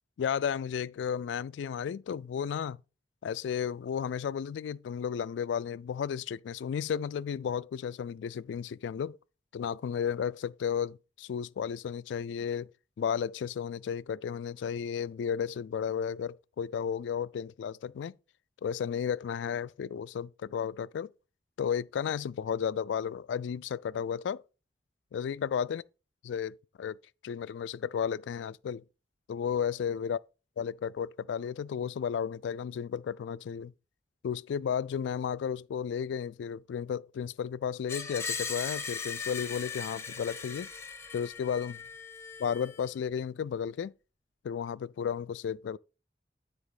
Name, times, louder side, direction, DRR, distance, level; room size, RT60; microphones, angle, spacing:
voice 1, 0.2-2.8 3.2-9.2 9.5-12.7 13.0-18.1 18.6-21.1 21.6-24.4 25.1-25.8 26.3-27.0 27.2-28.8 29.3-30.2 30.6-33.7 34.2-40.7 41.1-41.8 42.4-43.9 44.4-45.8, left 7 dB, 80° left, 0.3 m, -33 dB
Screech, 37.9-42.9, left 5 dB, 15° left, 0.9 m, -39 dB
9.5 x 4.0 x 5.0 m
head